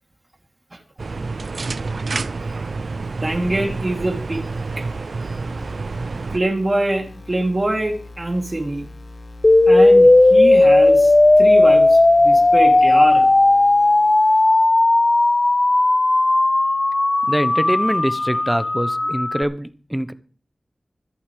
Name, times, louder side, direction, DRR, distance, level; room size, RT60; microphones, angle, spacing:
sound 1, 1.0-6.4, right 3 dB, 80° right, 0.5 m, -28 dB
voice 1, 3.2-4.4 4.8-4.9 5.2-5.3 6.3-8.9 9.7-13.2, right 1 dB, 35° right, 1 dB, 3.1 m, -24 dB
sound 2, 4.5-14.4, left 2 dB, 70° left, 6.5 m, -42 dB
sound 3, 9.4-19.4, left 2 dB, 40° left, 0.7 m, -14 dB
voice 2, 17.3-20.1, equal, 10° right, 12 dB, 1.0 m, -24 dB
25.5 x 8.7 x 3.4 m, 0.41 s
wide cardioid pair, 75°, 0 cm